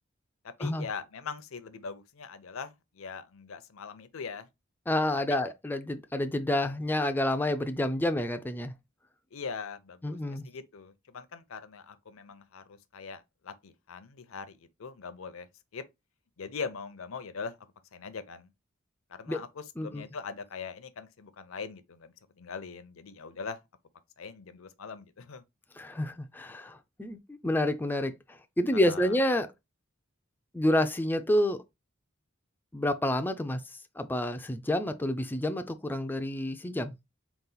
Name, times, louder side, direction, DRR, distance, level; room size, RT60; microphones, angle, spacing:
voice 1, 0.4-4.5 9.3-15.5 15.7-15.8 16.4-17.6 17.9-18.5 19.1-23.6 24.2-25.4 26.5-26.6 28.7-29.2, left 5 dB, 70° left, 0.6 m, -41 dB
voice 2, 4.9-8.7 10.0-10.5 19.3-19.4 19.8-20.0 25.8-28.1 28.6-29.5 30.5-31.6 32.7-33.6 34.0-36.9, left 1 dB, 10° left, 0.4 m, -29 dB
4.0 x 2.4 x 3.8 m
head